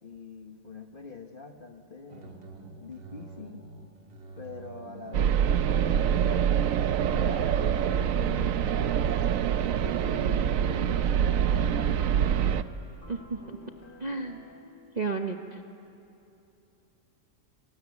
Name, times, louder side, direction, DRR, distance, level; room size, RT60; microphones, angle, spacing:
voice 1, 0.0-2.4 2.8-3.7 4.4-8.6 10.0-12.4, left 4 dB, 35° left, 5 dB, 1.2 m, -44 dB
sound 1, 2.1-10.7, right 4 dB, 85° right, 2.9 m, -46 dB
sound 2, 5.1-12.6, right 9 dB, 60° right, 1.0 m, -25 dB
sound 3, 7.6-14.5, equal, 70° left, 4.5 m, -50 dB
voice 2, 13.1-13.6 14.0-14.5 15.0-15.6, right 4 dB, 30° right, 4 dB, 0.9 m, -33 dB
29.0 x 20.0 x 8.5 m, 2.9 s
omnidirectional pair, 1.9 m